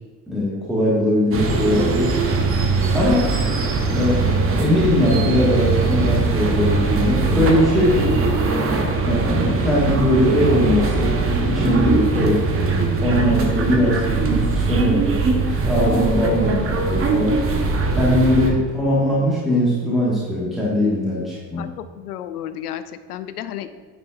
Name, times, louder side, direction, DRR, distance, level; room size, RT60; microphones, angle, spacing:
voice 1, 0.3-2.1 2.9-3.2 3.9-8.2 9.0-11.1 11.4-12.4 13.0-15.1 15.5-17.3 17.9-21.6, equal, ahead, -7 dB, 1.7 m, -20 dB
sound 1, 1.3-18.5, right 3 dB, 30° right, 0.9 m, -21 dB
voice 2, 21.6-23.7, left 10 dB, 70° left, 10 dB, 0.6 m, -32 dB
9.7 x 4.2 x 2.5 m, 1.5 s
figure-of-eight pair, 55°, 48 cm